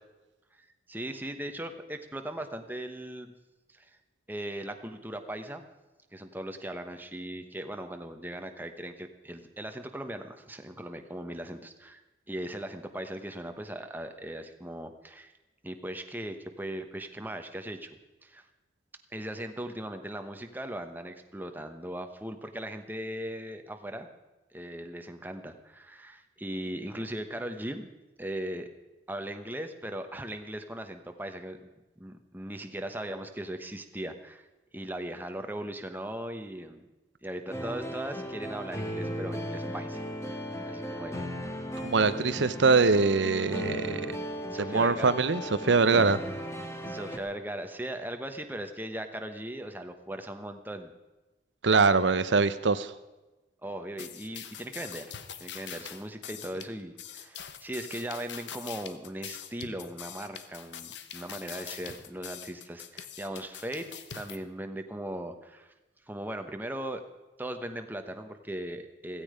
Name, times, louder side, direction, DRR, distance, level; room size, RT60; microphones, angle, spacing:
voice 1, 0.5-3.3 3.7-4.0 4.3-5.6 6.1-12.0 12.3-15.3 15.6-17.9 18.2-18.4 19.1-24.1 24.5-27.9 28.2-28.7 29.1-31.7 32.0-34.5 34.7-36.8 37.2-40.0 40.7-41.3 44.1-44.2 44.5-45.2 46.8-50.9 53.6-55.1 55.4-63.9 64.1-65.7 66.1-67.0 67.4-69.2, right 1 dB, 10° right, 6 dB, 1.1 m, -38 dB
sound 1, 37.5-47.2, equal, 15° left, 1.7 m, -36 dB
voice 2, 41.8-44.0 44.7-46.2 51.6-52.9, right 4 dB, 75° right, 12 dB, 0.7 m, -23 dB
sound 2, 54.0-64.4, left 8 dB, 70° left, 1.1 m, -43 dB
16.0 x 15.5 x 5.1 m, 1.1 s
head